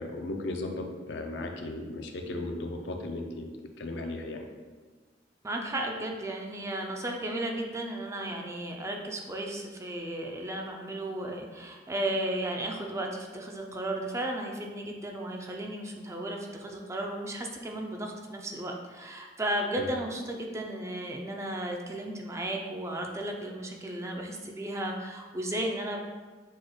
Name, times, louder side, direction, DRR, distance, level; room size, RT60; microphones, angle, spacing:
voice 1, 0.0-3.5 3.8-4.5 19.8-19.9, left 2 dB, 70° left, 3 dB, 0.5 m, -36 dB
voice 2, 5.4-26.0, right 1 dB, 15° right, 1 dB, 0.4 m, -34 dB
6.2 x 2.3 x 3.0 m, 1.4 s
head